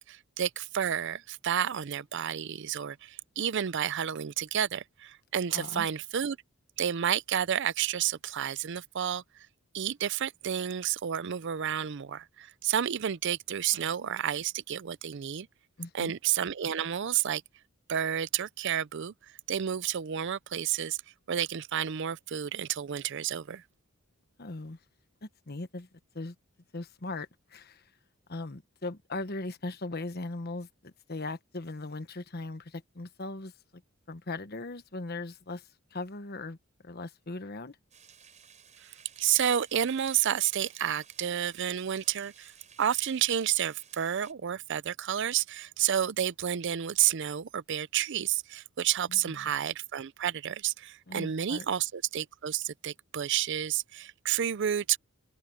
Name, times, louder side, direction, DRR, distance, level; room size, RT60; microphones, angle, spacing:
voice 1, 0.0-6.4 6.8-9.5 9.7-15.5 15.9-17.4 17.9-19.1 19.5-21.0 21.3-23.6 39.2-42.5 42.8-55.0, right 9 dB, 55° right, 0.5 m, -30 dB
voice 2, 5.5-5.9 13.7-13.8 15.8-16.1 24.4-24.8 25.2-25.9 26.1-26.3 26.7-27.8 28.3-33.8 34.1-36.6 36.8-37.8 49.1-49.5 51.1-51.7, left 2 dB, 50° left, 1.2 m, -39 dB
sound 1, 37.9-44.3, right 8 dB, 35° right, 6.3 m, -57 dB
open air
head